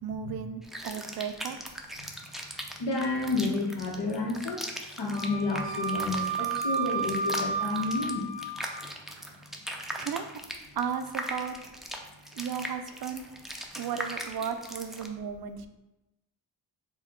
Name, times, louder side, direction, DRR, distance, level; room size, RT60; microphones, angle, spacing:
voice 1, 0.0-1.6 9.1-9.4 10.0-10.3 10.8-11.6 12.3-13.2 13.8-15.7, right 7 dB, 55° right, 8 dB, 0.5 m, -35 dB
sound 1, 0.6-15.1, equal, ahead, 0.4 m, -39 dB
voice 2, 2.8-4.7 5.0-8.3 8.8-8.9, left 3 dB, 65° left, 0 dB, 1.0 m, -30 dB
Wind instrument woodwind instrument, 5.1-8.8, right 4 dB, 25° right, 0.8 m, -32 dB
4.3 x 2.2 x 3.6 m, 0.96 s
cardioid pair, 55°, 46 cm